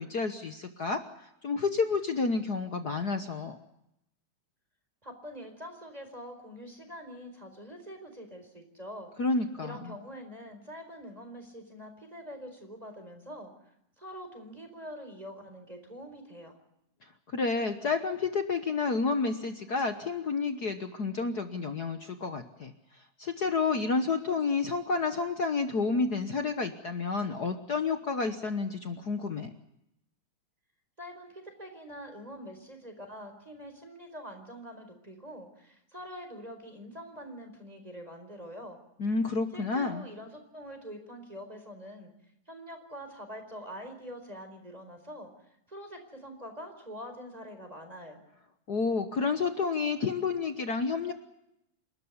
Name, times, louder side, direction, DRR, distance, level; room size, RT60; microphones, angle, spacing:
voice 1, 0.0-3.6 9.2-9.9 17.3-22.7 23.2-29.5 39.0-40.1 48.7-51.1, left 4 dB, 55° left, 8 dB, 1.1 m, -30 dB
voice 2, 5.0-9.1 9.6-13.5 14.0-16.5 31.0-38.8 39.5-42.1 42.5-45.3 45.7-48.2, equal, 10° right, 4 dB, 4.4 m, -45 dB
28.5 x 13.0 x 9.7 m, 0.82 s
omnidirectional pair, 3.4 m